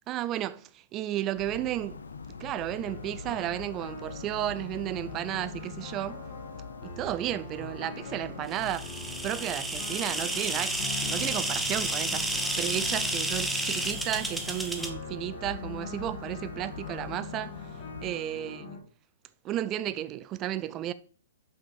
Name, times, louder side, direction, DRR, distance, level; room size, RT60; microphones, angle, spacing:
voice 1, 0.1-2.0 2.4-6.2 6.8-8.9 9.2-18.7 19.4-20.9, right 13 dB, 30° right, 0.3 m, -33 dB
sound 1, 1.4-18.1, left 5 dB, 90° left, 0.7 m, -44 dB
sound 2, 2.8-18.8, left 5 dB, 50° left, 2.0 m, -42 dB
sound 3, 8.6-14.9, right 2 dB, 5° right, 0.9 m, -31 dB
5.6 x 5.6 x 4.9 m
hypercardioid pair, 125°, 0 cm